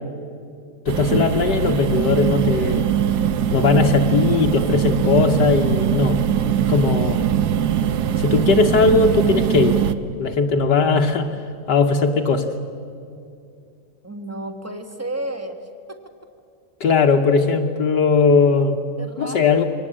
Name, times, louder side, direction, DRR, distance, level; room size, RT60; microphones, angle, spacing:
voice 1, 0.9-2.9 3.5-6.2 6.7-7.2 8.2-9.8 10.2-11.4 11.7-12.5 16.8-18.8 19.2-19.6, left 4 dB, 70° left, 3 dB, 1.6 m, -18 dB
sound 1, 0.9-9.9, right 9 dB, 70° right, 1.3 m, -21 dB
voice 2, 14.0-16.0 19.0-19.6, right 1 dB, 10° right, 6 dB, 1.3 m, -32 dB
24.0 x 18.5 x 8.7 m, 2.4 s
omnidirectional pair, 2.0 m